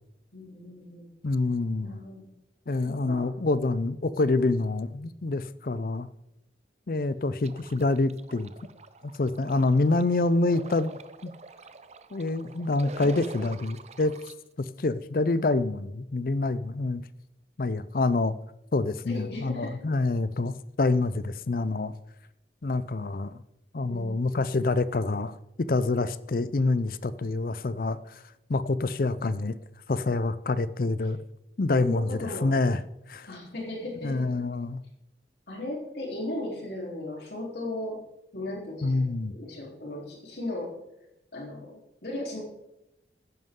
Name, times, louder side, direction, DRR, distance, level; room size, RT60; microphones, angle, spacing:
voice 1, 0.3-1.1 1.8-2.3 2.9-3.2 13.0-13.1 19.1-19.8 23.9-24.5 31.8-32.5 33.3-34.3 35.5-38.0 38.3-40.7 41.3-41.7 42.0-42.4, left 1 dB, 70° left, -2 dB, 3.7 m, -36 dB
voice 2, 1.2-2.0 2.7-6.1 6.9-8.5 9.0-11.3 12.1-14.1 14.8-17.0 17.6-18.3 18.7-21.9 22.6-23.3 23.7-25.4 25.7-28.2 28.5-29.6 29.9-31.2 31.6-32.8 33.1-33.3 34.0-34.8 38.8-39.3, left 3 dB, 50° left, 16 dB, 0.5 m, -26 dB
sound 1, 7.4-14.3, right 3 dB, 40° right, 0.5 m, -46 dB
15.0 x 11.0 x 3.8 m, 0.86 s
head